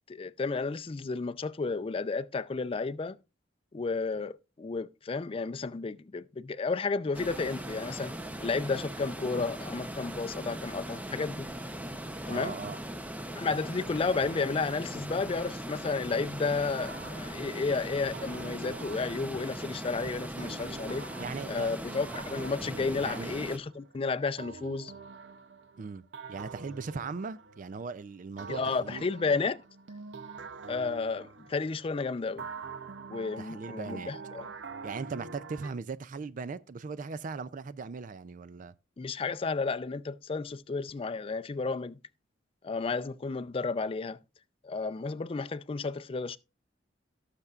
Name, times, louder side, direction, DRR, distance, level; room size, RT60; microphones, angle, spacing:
voice 1, 0.1-3.2 3.7-8.1 8.4-11.5 12.3-12.5 13.4-21.1 21.5-24.9 28.5-29.6 30.7-32.5 33.1-34.5 39.0-42.0 42.6-44.2 44.6-46.4, left 4 dB, 30° left, 0.4 m, -32 dB
sound 1, 7.1-23.6, right 1 dB, 10° right, 0.7 m, -39 dB
voice 2, 12.3-12.8 21.2-21.7 23.0-23.3 25.8-26.0 26.3-29.1 33.4-34.1 34.8-38.7, right 4 dB, 45° right, 0.4 m, -39 dB
sound 2, 16.7-19.8 20.4-23.9 24.4-27.9 28.4-31.9 32.4-35.7, right 4 dB, 85° right, 0.7 m, -46 dB
17.5 x 6.7 x 2.4 m
head